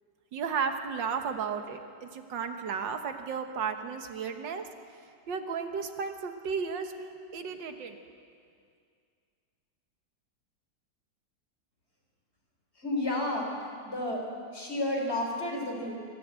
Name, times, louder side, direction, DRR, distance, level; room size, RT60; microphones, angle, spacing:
voice 1, 0.3-4.7 5.3-8.0, right 6 dB, 90° right, 6 dB, 2.0 m, -34 dB
voice 2, 12.8-14.3 14.5-16.0, left 1 dB, 35° left, 0 dB, 4.1 m, -31 dB
24.5 x 14.0 x 8.2 m, 2.2 s
omnidirectional pair, 1.9 m